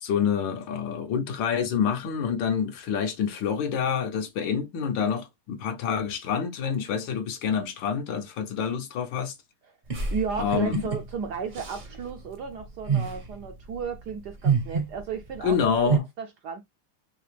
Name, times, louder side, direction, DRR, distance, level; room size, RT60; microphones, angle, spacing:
voice 1, 0.0-9.3 10.4-10.8 15.4-16.0, left 7 dB, 65° left, 1.5 m, -27 dB
sound 1, 9.9-16.0, right 5 dB, 40° right, 0.7 m, -29 dB
voice 2, 10.1-16.6, right 6 dB, 70° right, 1.0 m, -34 dB
4.8 x 2.9 x 3.3 m
omnidirectional pair, 2.3 m